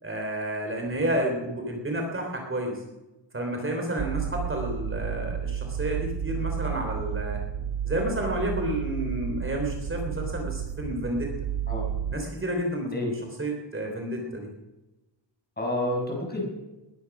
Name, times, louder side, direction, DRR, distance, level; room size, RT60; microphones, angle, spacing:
voice 1, 0.0-2.8 3.3-7.4 7.8-11.3 12.1-12.9 13.4-14.5, right 1 dB, 30° right, 1 dB, 3.5 m, -30 dB
sound 1, 4.0-12.2, right 8 dB, 50° right, 0.7 m, -32 dB
voice 2, 15.6-16.5, left 1 dB, 20° left, -1 dB, 6.0 m, -29 dB
20.5 x 11.0 x 6.1 m, 1.0 s
wide cardioid pair, 130°, 43 cm